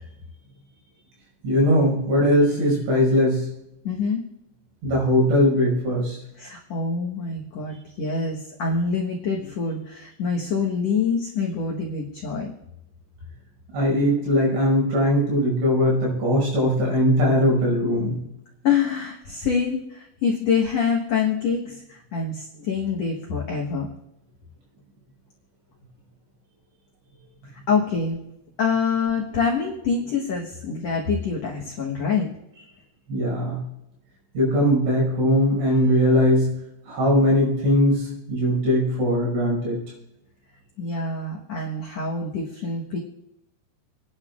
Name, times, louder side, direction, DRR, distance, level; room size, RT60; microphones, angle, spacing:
voice 1, 1.4-3.5 4.8-6.2 13.7-18.2 33.1-33.6 34.3-36.5 36.9-39.8, equal, 85° right, -2 dB, 7.9 m, -20 dB
voice 2, 3.8-4.2 6.4-12.5 18.6-23.9 27.7-28.2 28.6-32.3 40.8-43.0, left 5 dB, 80° left, -2 dB, 1.4 m, -25 dB
28.5 x 10.5 x 2.4 m, 0.85 s
omnidirectional pair, 5.1 m